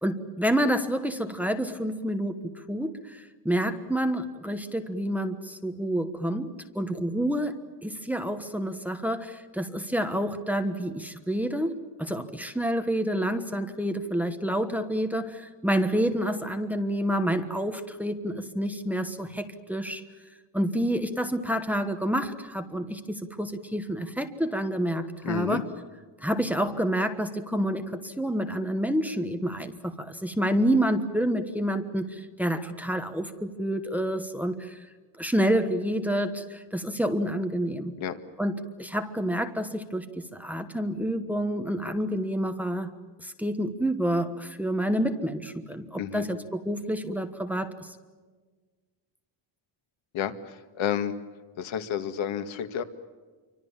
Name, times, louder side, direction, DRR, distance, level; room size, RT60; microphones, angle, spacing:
voice 1, 0.0-7.5 7.8-20.0 20.5-25.7 26.2-34.8 35.2-37.9 38.4-42.9 43.2-47.7, equal, 5° right, 8 dB, 1.3 m, -28 dB
voice 2, 25.2-25.6 38.0-38.2 46.0-46.3 50.1-51.1 51.6-52.8, left 9 dB, 75° left, 9 dB, 2.1 m, -30 dB
28.5 x 25.0 x 7.3 m, 1.4 s
cardioid pair, 175°, 47 cm